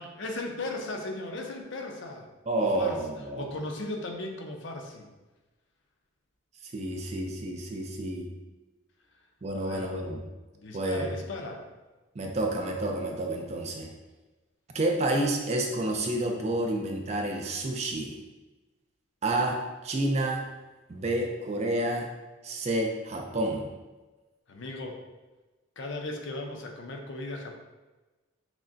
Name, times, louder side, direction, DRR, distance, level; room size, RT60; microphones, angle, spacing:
voice 1, 0.0-2.3 2.6-3.0 3.4-5.1 9.6-9.9 10.6-11.6 24.5-25.0 25.8-27.5, left 2 dB, 60° left, 2 dB, 0.5 m, -37 dB
voice 2, 2.5-3.5 6.6-8.3 9.4-10.2 10.7-11.1 12.2-13.9 14.7-18.2 19.2-20.4 20.9-22.1 22.4-23.7, right 1 dB, 30° right, 2 dB, 0.4 m, -29 dB
6.0 x 2.1 x 2.6 m, 1.2 s
head